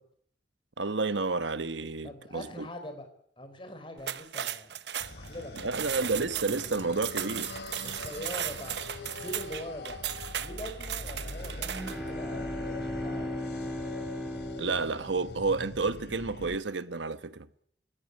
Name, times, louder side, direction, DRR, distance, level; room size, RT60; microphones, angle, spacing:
voice 1, 0.8-2.7 5.6-7.5 14.6-17.5, right 3 dB, 85° right, 1.1 m, -30 dB
voice 2, 2.0-3.1 3.4-4.7 5.1-6.0 7.8-10.0 10.4-13.7, equal, 30° left, 4.1 m, -43 dB
sound 1, 4.0-12.1, right 10 dB, 70° right, 0.9 m, -36 dB
sound 2, 5.0-16.6, left 2 dB, 65° left, 2.7 m, -43 dB
sound 3, 11.6-15.6, left 1 dB, 5° right, 2.9 m, -37 dB
21.0 x 17.0 x 9.6 m
head